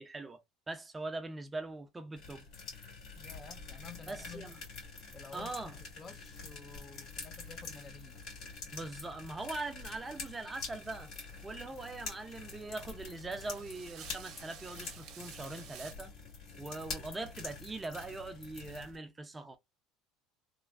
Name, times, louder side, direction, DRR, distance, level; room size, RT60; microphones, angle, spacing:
voice 1, 0.0-2.4 2.7-2.8 4.1-4.5 5.3-5.7 8.7-11.1 11.4-16.1 16.6-19.6, right 2 dB, 20° right, 0.6 m, -42 dB
sound 1, 2.2-19.0, left 4 dB, 60° left, 2.0 m, -46 dB
voice 2, 3.2-4.6 5.1-8.2 11.7-11.8, left 5 dB, 30° left, 0.7 m, -52 dB
sound 2, 10.8-15.9, right 8 dB, 60° right, 1.0 m, -53 dB
3.2 x 2.2 x 2.4 m
hypercardioid pair, 85°, 0 cm